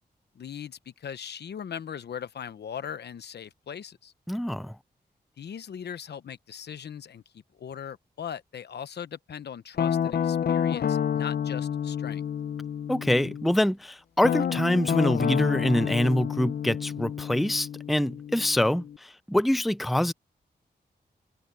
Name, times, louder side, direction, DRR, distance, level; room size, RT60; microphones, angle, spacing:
voice 1, 0.3-4.1 5.4-7.2 7.5-12.3, left 8 dB, 85° left, 1.0 m, -39 dB
voice 2, 4.3-4.8 12.9-20.1, left 1 dB, ahead, 0.4 m, -25 dB
Guitar, 9.8-13.5 14.2-19.0, left 8 dB, 70° left, 0.6 m, -29 dB
wide cardioid pair, 85°, 17 cm